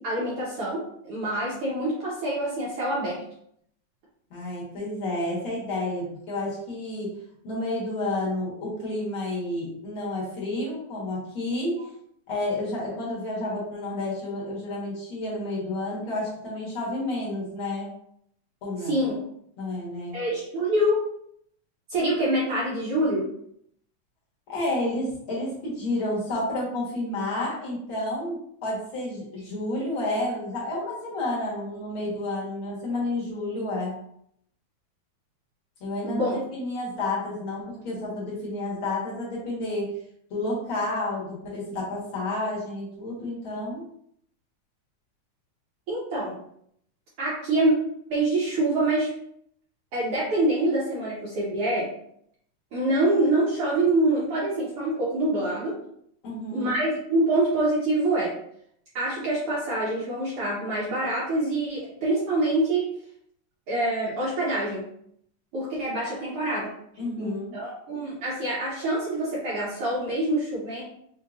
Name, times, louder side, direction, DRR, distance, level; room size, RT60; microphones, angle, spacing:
voice 1, 0.0-3.2 18.8-19.1 20.1-21.0 21.9-23.3 36.0-36.4 45.9-46.3 47.2-47.7 48.1-49.1 49.9-51.9 52.7-55.8 56.5-58.3 58.9-62.9 63.7-64.8 65.5-66.7 67.2-70.8, right 1 dB, 65° right, -7 dB, 1.5 m, -25 dB
voice 2, 4.3-11.9 12.3-17.9 18.6-19.0 19.6-20.2 24.5-34.0 35.8-39.9 40.3-43.8 56.2-56.7 67.0-67.6, left 2 dB, 50° left, -6 dB, 1.9 m, -30 dB
5.8 x 2.8 x 2.5 m, 0.70 s
omnidirectional pair, 3.5 m